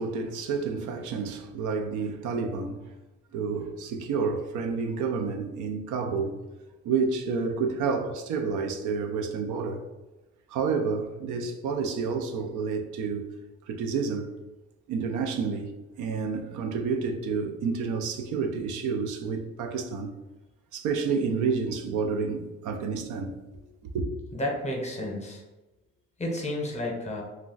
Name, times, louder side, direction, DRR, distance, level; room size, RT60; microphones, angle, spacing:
voice 1, 0.0-2.8 3.3-6.4 6.8-9.8 10.5-13.4 13.7-14.3 14.9-15.7 16.0-20.1 20.7-23.6 23.9-24.0, right 5 dB, 80° right, 0.5 m, -29 dB
voice 2, 24.3-25.4 26.2-27.2, left 1 dB, 25° left, 0.8 m, -31 dB
2.3 x 2.2 x 3.8 m
cardioid pair, 90°, 30 cm